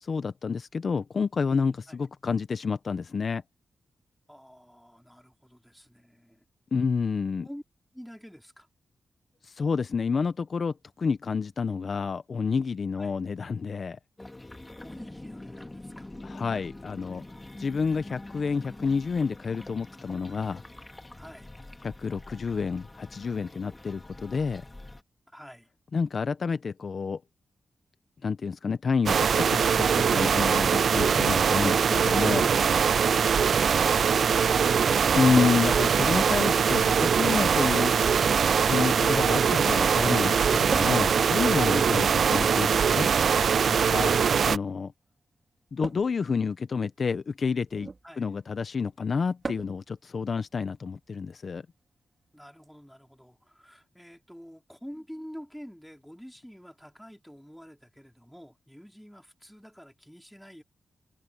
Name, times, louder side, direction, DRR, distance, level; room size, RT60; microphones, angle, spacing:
voice 1, 0.0-3.4 6.7-7.5 9.4-14.0 16.2-17.2 17.6-20.6 21.8-24.6 25.9-27.2 28.2-32.5 35.2-37.9 38.7-43.1 43.7-44.2 44.5-44.9 45.7-47.9 48.2-51.6, left 5 dB, 55° left, 0.8 m, -29 dB
voice 2, 4.3-6.4 7.4-7.6 7.9-8.7 12.9-13.1 14.6-16.1 17.1-17.9 21.1-21.5 25.3-25.7 41.5-41.9 43.9-44.1 48.0-48.3 52.3-60.6, equal, ahead, 4.6 m, -48 dB
sound 1, 14.2-25.0, left 2 dB, 20° left, 2.1 m, -45 dB
sound 2, 29.1-44.6, right 7 dB, 70° right, 0.4 m, -22 dB
sound 3, 40.7-41.1 42.2-43.3 44.0-44.3 45.8-46.1 47.7-48.1 49.4-49.8 51.3-51.4 52.6-52.7, right 3 dB, 40° right, 4.4 m, -38 dB
cardioid pair, 80°, 0 cm